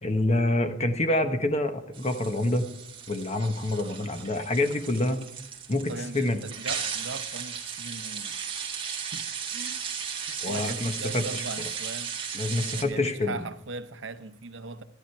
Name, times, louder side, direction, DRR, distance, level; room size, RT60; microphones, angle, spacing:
voice 1, 0.0-2.7 3.1-5.2 5.7-6.4 10.4-11.2 12.3-13.4, left 1 dB, 35° left, 1.2 m, -27 dB
sound 1, 1.9-12.8, right 7 dB, 25° right, 1.8 m, -36 dB
voice 2, 5.9-8.4 9.1-9.8 10.2-12.2 12.4-14.8, right 3 dB, 65° right, 0.8 m, -39 dB
13.0 x 11.5 x 4.6 m
head